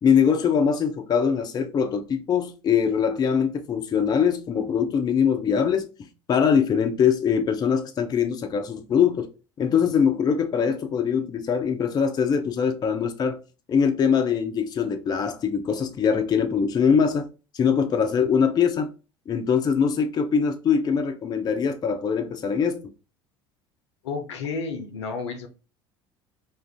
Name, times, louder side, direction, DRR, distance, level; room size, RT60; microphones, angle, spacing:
voice 1, 0.0-9.3 9.6-13.4 13.7-17.3 17.5-18.9 19.3-22.8, left 7 dB, 30° left, 0.4 m, -22 dB
voice 2, 24.0-25.5, left 4 dB, 75° left, 0.5 m, -31 dB
2.4 x 2.4 x 3.3 m
figure-of-eight pair, 65°, 15 cm